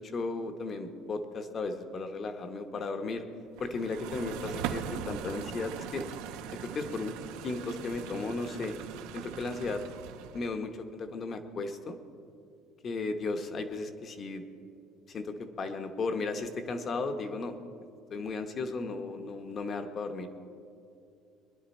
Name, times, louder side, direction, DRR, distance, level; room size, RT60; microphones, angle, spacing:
voice 1, 0.1-3.2 3.6-6.1 6.5-7.1 7.4-8.7 9.1-9.8 10.3-12.0 12.8-14.4 15.1-17.6 18.1-20.3, left 3 dB, 30° left, 7 dB, 1.0 m, -35 dB
sound 1, 3.6-10.6, right 9 dB, 85° right, 0.9 m, -40 dB
22.0 x 11.0 x 4.3 m, 2.6 s
cardioid pair, 160°, 0 cm